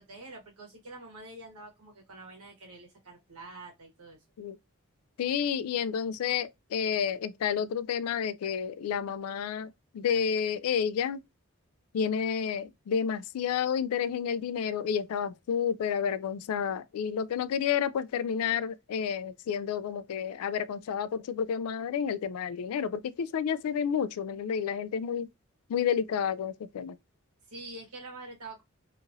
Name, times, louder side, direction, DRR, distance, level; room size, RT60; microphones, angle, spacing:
voice 1, 0.0-4.2 27.5-28.6, right 2 dB, 90° right, 1.3 m, -46 dB
voice 2, 5.2-11.2 11.9-25.3 25.7-27.0, left 7 dB, 85° left, 0.3 m, -30 dB
2.9 x 2.5 x 2.5 m
head